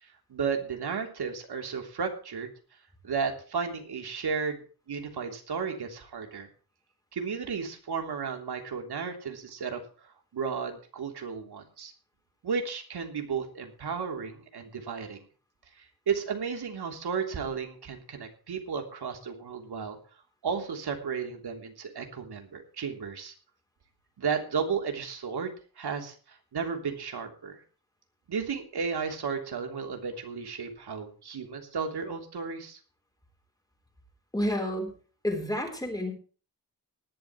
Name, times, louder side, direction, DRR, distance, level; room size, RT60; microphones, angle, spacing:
voice 1, 0.0-2.5 3.0-4.6 4.9-6.5 7.1-11.9 12.4-15.2 15.8-20.0 20.4-23.3 24.2-27.6 28.3-32.8, right 6 dB, 90° right, 3 dB, 3.3 m, -34 dB
voice 2, 34.3-34.9 35.2-36.1, left 1 dB, 10° left, 4 dB, 3.9 m, -30 dB
19.0 x 12.0 x 3.1 m, 0.39 s
wide cardioid pair, 175°, 38 cm